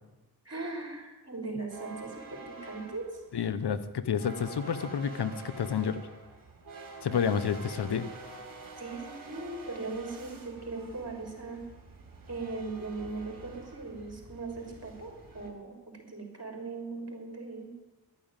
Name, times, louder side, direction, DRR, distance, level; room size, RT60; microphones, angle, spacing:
voice 1, 0.4-3.2 8.8-11.6 12.3-17.7, right 3 dB, 40° right, 2 dB, 4.0 m, -39 dB
sound 1, 1.7-15.5, right 4 dB, 55° right, 2.6 m, -47 dB
voice 2, 3.3-6.0 7.0-8.1, left 7 dB, 75° left, 13 dB, 0.9 m, -30 dB
11.5 x 8.9 x 9.0 m, 1.1 s
cardioid pair, 65°, 40 cm